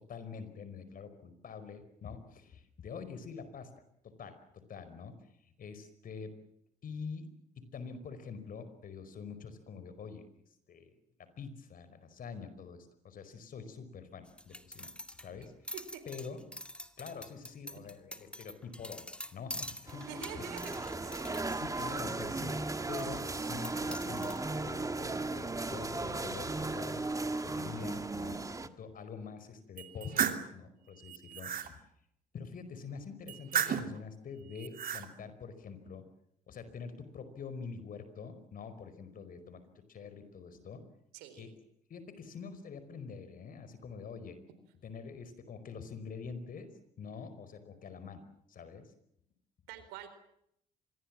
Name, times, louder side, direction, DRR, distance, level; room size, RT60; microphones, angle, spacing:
voice 1, 0.1-3.7 4.0-4.4 4.7-5.1 5.6-6.4 6.8-7.3 7.7-10.2 10.7-10.9 11.4-14.9 15.2-15.5 16.0-16.4 17.0-20.5 21.5-22.6 22.9-31.8 32.3-36.0 36.5-39.6 39.9-40.8 41.4-41.5 41.9-44.4 44.8-46.7 47.0-48.2 48.5-48.9, left 5 dB, 55° left, 12 dB, 5.0 m, -45 dB
sound 1, 14.3-21.9 22.3-22.4 23.0-23.2 23.6-24.4, left 1 dB, 5° left, 2.1 m, -45 dB
sound 2, 19.9-28.7, right 3 dB, 20° right, 1.7 m, -36 dB
voice 2, 20.1-20.8 41.1-41.5 49.7-50.1, right 9 dB, 90° right, 10 dB, 4.3 m, -45 dB
sound 3, 29.8-30.5 31.0-31.7 33.3-34.0 34.6-35.1, right 8 dB, 60° right, 2.8 m, -33 dB
25.5 x 22.0 x 7.6 m, 0.75 s
supercardioid pair, 70°, 17 cm